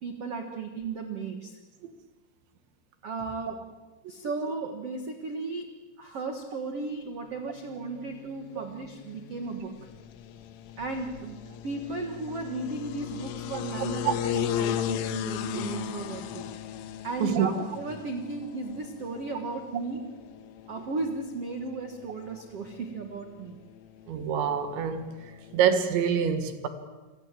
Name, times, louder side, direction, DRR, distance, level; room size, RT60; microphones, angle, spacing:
voice 1, 0.0-1.6 3.0-3.6 4.1-9.7 10.8-11.4 11.6-16.5 17.0-20.0 20.7-23.6, right 3 dB, 90° right, 4 dB, 1.3 m, -35 dB
sound 1, 7.6-25.6, left 11 dB, 90° left, 3.8 m, -37 dB
voice 2, 17.2-17.5 24.1-25.1 25.5-26.7, right 8 dB, 70° right, 8 dB, 3.9 m, -26 dB
29.0 x 23.5 x 7.6 m, 1.2 s
omnidirectional pair, 5.7 m